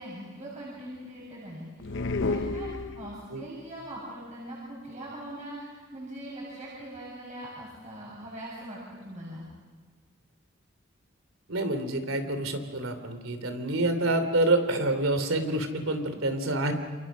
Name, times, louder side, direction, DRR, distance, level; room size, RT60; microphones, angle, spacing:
voice 1, 0.0-9.5, right 1 dB, 35° right, -5 dB, 7.2 m, -41 dB
sound 1, 1.8-3.4, left 3 dB, 65° left, 0.7 m, -31 dB
voice 2, 11.5-16.7, right 2 dB, 90° right, 9 dB, 3.2 m, -27 dB
28.5 x 28.5 x 6.3 m, 1.4 s
head